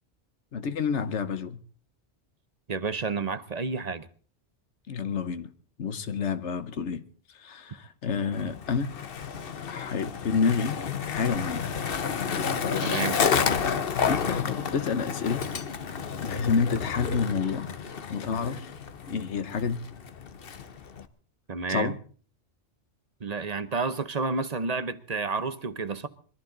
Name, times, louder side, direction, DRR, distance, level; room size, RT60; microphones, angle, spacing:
voice 1, 0.5-1.6 4.9-5.5 5.8-7.0 7.3-8.9 9.6-10.7 11.0-11.7 12.5-13.0 14.0-15.5 16.2-17.7 18.1-18.7 19.1-19.8 21.7-22.0, left 5 dB, 80° left, 1.3 m, -29 dB
voice 2, 2.7-4.1 12.8-13.2 21.5-21.9 23.2-26.1, right 4 dB, 40° right, 0.9 m, -30 dB
Skateboard, 8.3-21.1, left 6 dB, 55° left, 1.1 m, -31 dB
22.0 x 14.5 x 3.9 m
omnidirectional pair, 1.2 m